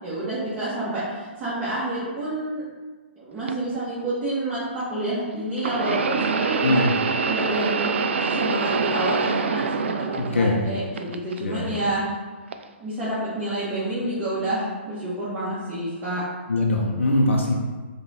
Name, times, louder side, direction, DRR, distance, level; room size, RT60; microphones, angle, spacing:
voice 1, 0.0-2.7 3.2-6.8 7.2-7.9 8.3-12.0 12.8-16.2, right 1 dB, 25° right, -11 dB, 1.3 m, -28 dB
sound 1, 3.5-3.6 5.6-10.6 11.0-11.8 12.5-12.7 13.6-13.7, right 5 dB, 65° right, 0.3 m, -25 dB
voice 2, 10.2-10.6 11.4-11.8 16.5-17.5, left 2 dB, 80° left, -1 dB, 0.6 m, -22 dB
4.7 x 2.4 x 4.2 m, 1.4 s
figure-of-eight pair, 120°, 7 cm